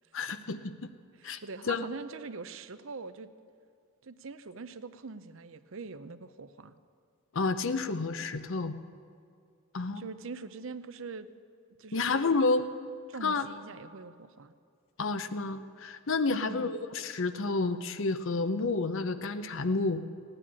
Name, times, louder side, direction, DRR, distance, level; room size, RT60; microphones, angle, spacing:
voice 1, 0.1-0.7 1.2-1.4 1.7-1.9 7.3-8.7 9.7-10.0 11.9-12.7 13.2-13.5 15.0-20.0, left 3 dB, 55° left, 11 dB, 0.7 m, -30 dB
voice 2, 1.1-3.3 4.0-6.7 9.9-11.3 11.8-12.0 13.1-14.5 16.3-16.7, right 4 dB, 60° right, 12 dB, 0.6 m, -43 dB
17.0 x 9.9 x 8.7 m, 2.2 s
head